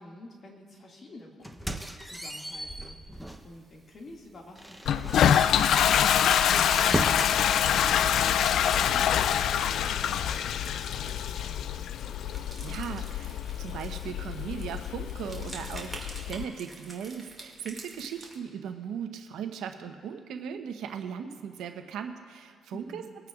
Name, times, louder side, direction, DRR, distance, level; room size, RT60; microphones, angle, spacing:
voice 1, 0.0-7.4 7.6-12.2 22.7-23.0, left 2 dB, 45° left, -1 dB, 2.2 m, -50 dB
sound 1, 1.4-3.5 4.0-4.1 4.6-7.4, right 1 dB, 5° left, 0.9 m, -36 dB
sound 2, 3.2-18.4, right 2 dB, 15° right, 2.3 m, -49 dB
Toilet flush, 4.9-16.4, left 9 dB, 70° left, 0.3 m, -26 dB
voice 2, 12.6-23.0, right 7 dB, 85° right, 6 dB, 0.9 m, -38 dB
23.0 x 8.9 x 2.5 m, 2.1 s
cardioid pair, 90°, 0 cm